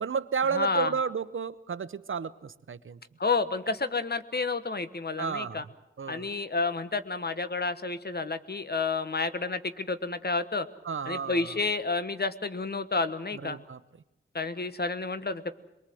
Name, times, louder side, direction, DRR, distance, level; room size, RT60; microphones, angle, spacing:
voice 1, 0.0-3.0 5.2-5.6 6.0-6.3 10.9-11.6 13.4-13.8, right 6 dB, 80° right, 15 dB, 0.9 m, -32 dB
voice 2, 0.5-0.9 3.2-5.6 6.1-10.7 11.0-13.6 14.3-15.5, left 4 dB, 50° left, 11 dB, 1.3 m, -30 dB
23.5 x 22.0 x 7.7 m, 0.93 s
wide cardioid pair, 60°, 20 cm